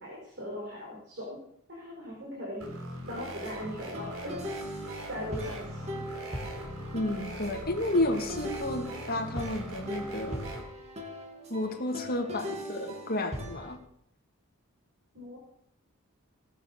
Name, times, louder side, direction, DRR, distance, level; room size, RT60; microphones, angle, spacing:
voice 1, 0.0-1.4 1.7-2.7 3.1-4.3 4.7-5.9 15.1-15.4, left 1 dB, 55° right, -3 dB, 4.8 m, -39 dB
sound 1, 2.6-10.6, right 1 dB, 85° right, 3.4 m, -41 dB
sound 2, 3.2-13.8, equal, 30° right, 2.3 m, -40 dB
voice 2, 6.9-10.4 11.5-13.8, left 2 dB, 45° left, 2 dB, 2.3 m, -31 dB
18.5 x 7.7 x 6.7 m, 0.72 s
head